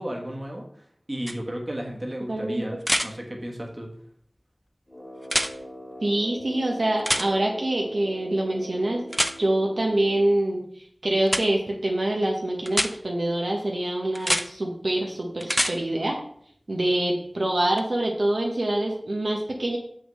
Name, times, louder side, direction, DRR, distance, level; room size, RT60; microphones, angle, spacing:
voice 1, 0.0-2.8 3.0-3.9, equal, 35° right, 0 dB, 1.4 m, -34 dB
sound 1, 1.3-1.4 2.8-3.1 5.2-5.5 7.0-7.3 9.1-9.3 11.3-11.4 12.7-12.9 14.1-14.4 15.4-15.7 17.8-17.9, equal, ahead, 0.5 m, -24 dB
voice 2, 2.3-2.8 6.0-9.1 9.4-10.6 11.0-16.2 16.7-19.8, right 1 dB, 75° right, -1 dB, 1.1 m, -25 dB
Brass instrument, 4.9-10.5, equal, 30° left, 1.6 m, -42 dB
6.5 x 5.8 x 3.2 m, 0.62 s
wide cardioid pair, 55°, 0 cm